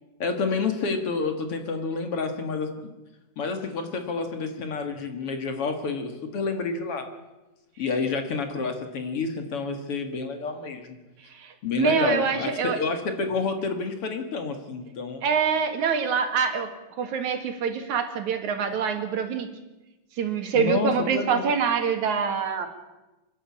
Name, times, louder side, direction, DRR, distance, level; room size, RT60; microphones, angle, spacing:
voice 1, 0.2-2.9 3.4-7.1 7.8-11.0 11.6-15.2 20.6-21.5, left 4 dB, 55° left, 6 dB, 2.6 m, -29 dB
voice 2, 11.3-12.8 15.2-16.7 17.0-19.5 20.2-22.7, right 6 dB, 80° right, 6 dB, 3.3 m, -25 dB
27.5 x 11.5 x 8.6 m, 1.1 s
omnidirectional pair, 3.3 m